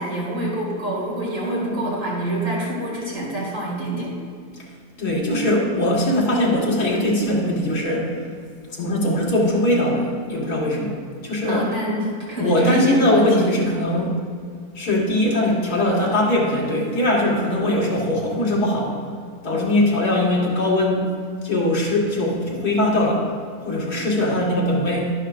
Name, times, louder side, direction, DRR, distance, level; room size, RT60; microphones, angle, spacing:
voice 1, 0.0-4.1 11.5-13.5, right 1 dB, 55° right, -6 dB, 3.3 m, -26 dB
voice 2, 1.4-1.9 5.0-8.2 8.7-11.7 12.4-14.1 14.7-19.0 19.4-21.1 21.4-23.3 23.6-25.1, left 1 dB, 85° left, -4 dB, 2.4 m, -21 dB
12.0 x 10.5 x 2.5 m, 2.1 s
omnidirectional pair, 1.6 m